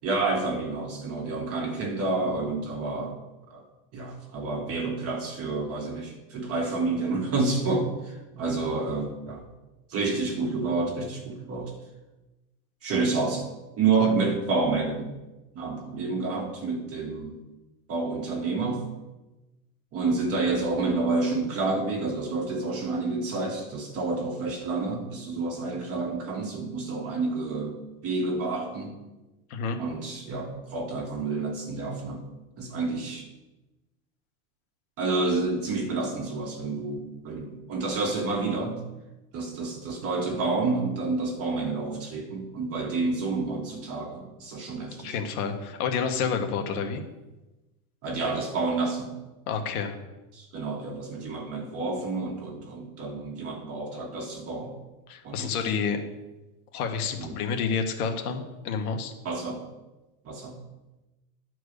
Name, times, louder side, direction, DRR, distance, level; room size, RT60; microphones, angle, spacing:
voice 1, 0.0-3.2 3.5-3.6 3.9-9.4 9.9-11.7 12.8-13.5 13.8-15.1 15.5-17.4 17.9-18.9 19.9-28.9 29.8-32.2 32.6-33.3 35.0-38.8 39.3-45.1 48.0-49.2 50.3-54.8 55.2-55.7 57.2-57.4 59.2-59.7 60.2-60.6, right 3 dB, 35° right, 1 dB, 1.6 m, -29 dB
voice 2, 45.0-47.0 49.5-50.0 55.1-56.0 56.7-59.1, left 6 dB, 85° left, 4 dB, 1.7 m, -29 dB
11.0 x 4.7 x 6.6 m, 1.0 s
supercardioid pair, 155°, 43 cm